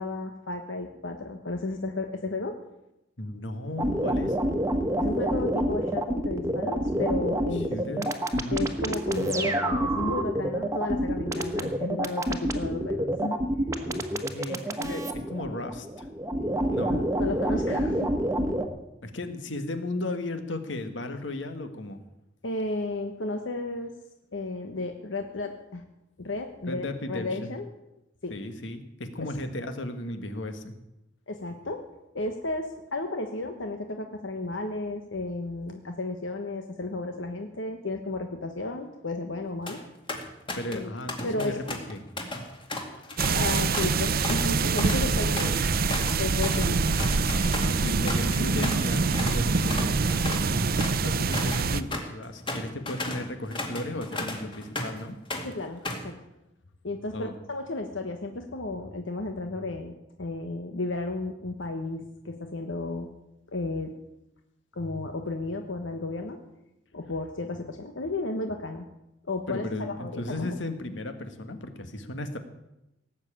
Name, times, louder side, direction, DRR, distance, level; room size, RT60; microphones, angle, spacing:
voice 1, 0.0-2.6 5.0-7.7 8.5-13.4 16.9-18.1 22.4-23.9 24.3-25.8 26.2-27.7 28.2-28.3 31.3-31.8 32.1-39.8 40.7-40.9 41.2-41.6 43.3-45.7 46.2-46.8 55.4-56.1 56.8-63.1 63.5-63.9 64.7-66.4 66.9-68.8 69.3-70.6, left 2 dB, 85° left, 5 dB, 1.2 m, -33 dB
voice 2, 3.2-4.4 7.5-8.1 8.3-8.6 13.8-14.0 14.3-16.1 16.7-17.0 19.0-22.0 26.6-27.5 28.3-30.7 40.5-42.0 42.9-43.2 47.8-50.6 51.0-55.2 57.1-57.3 69.5-72.4, left 1 dB, 70° left, 8 dB, 1.7 m, -35 dB
sound 1, 3.8-18.7, right 1 dB, 15° right, 1.3 m, -27 dB
sound 2, 39.4-39.8 40.1-40.8 41.1-48.8 49.1-49.4 49.7-55.0 55.3-56.1, left 2 dB, 25° left, 2.2 m, -35 dB
sound 3, 43.2-51.8, right 4 dB, 50° right, 0.7 m, -25 dB
18.0 x 7.4 x 8.9 m, 0.91 s
head